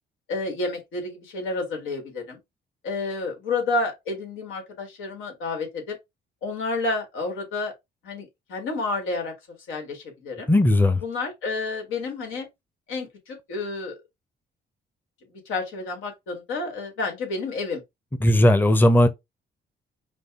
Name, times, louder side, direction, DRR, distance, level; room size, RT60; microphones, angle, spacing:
voice 1, 0.3-2.4 2.8-6.0 6.4-7.7 8.0-9.3 9.7-10.5 11.0-12.5 12.9-13.9 15.4-17.8, left 3 dB, 90° left, 1.7 m, -30 dB
voice 2, 10.5-11.0 18.2-19.1, left 1 dB, 10° left, 0.6 m, -17 dB
5.3 x 2.3 x 3.6 m
cardioid pair, 90°, 20 cm